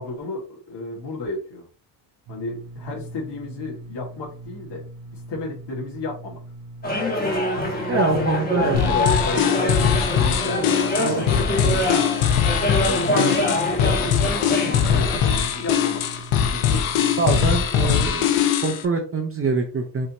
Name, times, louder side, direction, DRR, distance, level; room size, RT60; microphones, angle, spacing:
voice 1, 0.0-1.7 2.3-4.8 5.1-6.4 7.7-12.3 12.8-16.0 16.4-16.8 17.7-17.9, left 2 dB, 55° left, -3 dB, 2.1 m, -33 dB
sound 1, 2.3-17.3, right 2 dB, 55° right, 0.9 m, -41 dB
sound 2, 6.8-15.2, left 1 dB, 20° left, 1.2 m, -25 dB
voice 2, 7.9-9.0 11.0-11.2 11.6-11.8 13.1-13.4 17.2-18.3 18.6-20.1, right 4 dB, 25° right, 4 dB, 0.6 m, -24 dB
sound 3, 8.7-18.8, left 8 dB, 80° left, 0.8 m, -21 dB
5.3 x 2.8 x 2.9 m, 0.38 s
cardioid pair, 115°, 49 cm